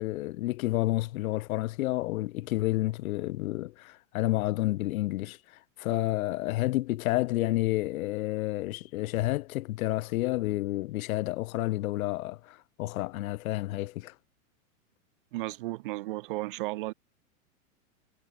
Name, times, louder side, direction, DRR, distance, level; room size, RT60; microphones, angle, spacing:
voice 1, 0.0-5.4 5.8-14.1, left 17 dB, 75° left, 0.5 m, -30 dB
voice 2, 15.3-16.9, right 19 dB, 35° right, 0.9 m, -34 dB
supercardioid pair, 170°, 43 cm